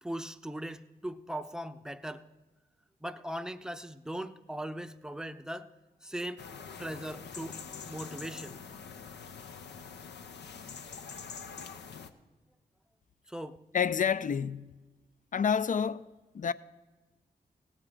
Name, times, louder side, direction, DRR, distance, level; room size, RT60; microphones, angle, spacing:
voice 1, 0.0-2.3 3.0-5.7 6.0-6.4 6.8-7.6 7.9-8.5 13.3-13.6, right 1 dB, 5° right, 0.7 m, -39 dB
sound 1, 6.4-12.1, left 6 dB, 80° left, 0.7 m, -45 dB
voice 2, 13.7-14.8 15.3-16.1 16.3-16.5, left 7 dB, 50° left, 0.5 m, -28 dB
17.5 x 7.4 x 4.9 m
cardioid pair, 45°, 18 cm